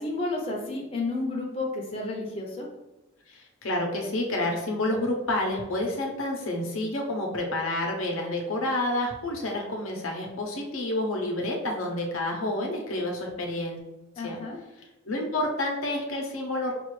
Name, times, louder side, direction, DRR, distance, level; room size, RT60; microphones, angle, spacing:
voice 1, 0.0-2.7 14.2-14.6, left 2 dB, 25° left, -2 dB, 0.6 m, -31 dB
voice 2, 3.3-13.8 14.2-14.4 15.1-16.7, left 1 dB, 80° left, 1 dB, 0.8 m, -29 dB
5.3 x 2.4 x 3.1 m, 0.98 s
head